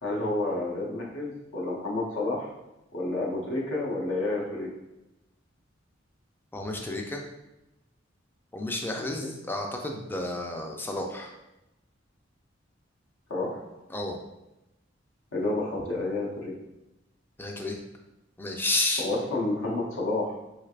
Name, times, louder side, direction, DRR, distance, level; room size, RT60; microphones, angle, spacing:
voice 1, 0.0-2.5 2.9-4.7 9.0-9.3 13.3-13.8 15.3-16.5 19.0-20.4, left 2 dB, 80° left, -3 dB, 0.8 m, -30 dB
voice 2, 6.5-7.2 8.5-11.3 13.9-14.2 17.4-17.8 18.4-19.1, left 2 dB, 10° left, 2 dB, 0.4 m, -31 dB
3.2 x 3.2 x 2.4 m, 0.94 s
head